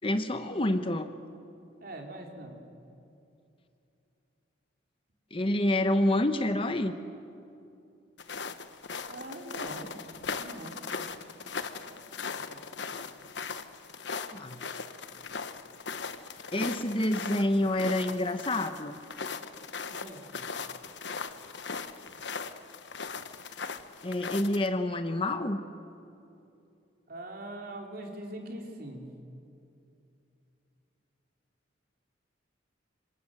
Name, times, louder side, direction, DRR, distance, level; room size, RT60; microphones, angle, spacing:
voice 1, 0.0-1.1 5.3-6.9 14.3-14.6 16.5-19.0 24.0-25.6, left 1 dB, 30° left, 9 dB, 1.0 m, -28 dB
voice 2, 1.8-2.6 9.1-9.9 10.4-10.7 11.4-12.0 12.3-13.0 19.9-20.4 27.1-29.0, right 1 dB, 50° right, 1 dB, 4.0 m, -43 dB
sound 1, 8.2-24.7, left 5 dB, 65° left, 1.2 m, -39 dB
26.5 x 26.0 x 7.9 m, 2.7 s
head